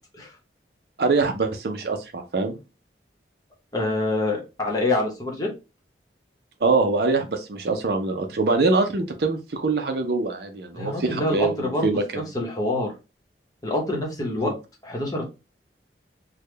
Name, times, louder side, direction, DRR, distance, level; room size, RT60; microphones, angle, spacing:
voice 1, 1.0-2.6 6.6-12.2 14.4-14.5, right 3 dB, 60° right, 6 dB, 0.5 m, -24 dB
voice 2, 3.7-5.5 10.7-11.9 12.3-12.9 13.6-14.5 14.8-15.3, left 2 dB, 20° left, 0 dB, 0.9 m, -26 dB
3.4 x 2.2 x 3.2 m, 0.27 s
head